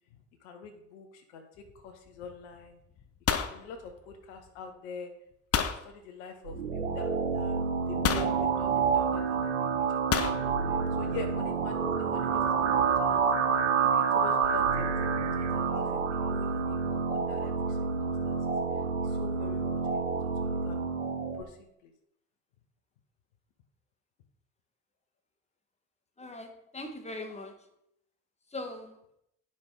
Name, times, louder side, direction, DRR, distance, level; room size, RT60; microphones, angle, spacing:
voice 1, 0.4-1.5 1.7-2.8 3.3-5.1 5.5-6.6 6.9-10.4 10.7-18.4 19.0-20.0 20.4-20.9 21.4-21.9, left 5 dB, 65° left, 5 dB, 1.3 m, -46 dB
sound 1, 1.6-2.0 2.2-2.6 2.9-4.5 5.5-5.8 7.0-7.1 8.0-8.4 10.1-10.4, left 7 dB, 40° left, 1.0 m, -29 dB
sound 2, 6.5-21.4, right 6 dB, 80° right, 1.0 m, -28 dB
voice 2, 26.2-27.7 28.5-29.0, left 2 dB, 15° left, 4 dB, 1.8 m, -41 dB
10.5 x 5.7 x 4.8 m, 0.75 s
figure-of-eight pair, 50°, 37 cm